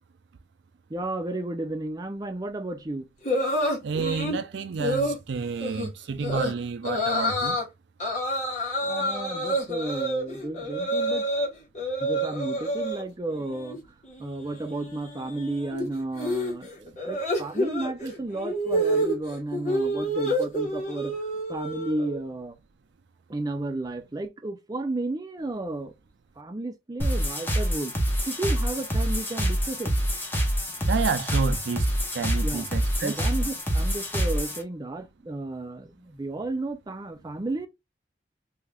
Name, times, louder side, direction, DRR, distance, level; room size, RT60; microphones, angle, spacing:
voice 1, 0.9-3.1 8.8-11.3 12.0-13.8 14.2-21.1 21.5-22.6 23.3-25.9 26.4-27.9 28.3-29.9 32.4-32.7 33.0-37.7, right 2 dB, 20° right, 0.5 m, -33 dB
sound 1, 3.2-4.4 4.8-5.2 5.6-5.9 6.2-6.5 6.8-7.6 8.0-11.5 11.7-13.0 13.4-13.8 14.0-22.2, equal, 45° left, 1.0 m, -28 dB
voice 2, 3.8-7.6 30.9-31.9 32.1-33.2, right 5 dB, 90° right, 0.4 m, -30 dB
sound 2, 27.0-34.6, equal, 10° left, 0.7 m, -26 dB
2.8 x 2.4 x 3.3 m
head